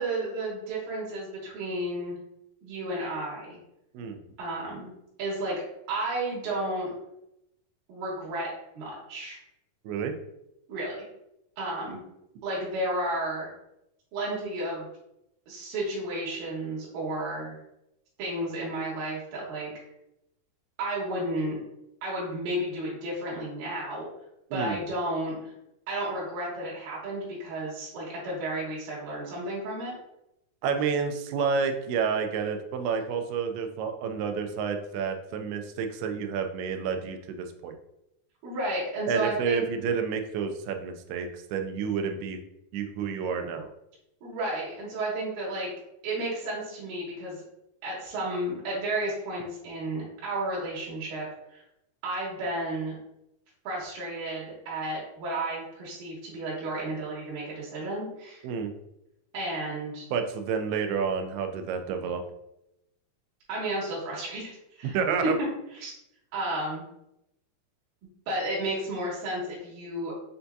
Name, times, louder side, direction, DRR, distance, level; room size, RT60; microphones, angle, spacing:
voice 1, 0.0-2.2 2.6-3.6 4.4-4.9 5.2-5.6 5.9-6.9 7.9-9.4 10.7-11.0 11.6-12.0 12.4-13.5 14.1-14.9 15.5-17.6 18.2-19.7 20.8-21.6 22.0-24.1 24.5-25.5 25.9-29.9 38.4-39.6 44.2-45.7 46.0-47.4 47.8-51.6 52.0-52.9 53.6-58.4 59.3-60.0 63.5-65.3 65.7-65.9 66.3-66.9 68.3-70.1, right 1 dB, 70° right, -7 dB, 2.8 m, -32 dB
voice 2, 9.9-10.2 24.5-24.8 30.6-37.7 39.1-42.4 42.7-43.7 58.4-58.7 60.1-62.2 64.8-65.3, right 6 dB, 85° right, 6 dB, 2.5 m, -29 dB
6.8 x 2.6 x 2.3 m, 0.84 s
omnidirectional pair, 4.5 m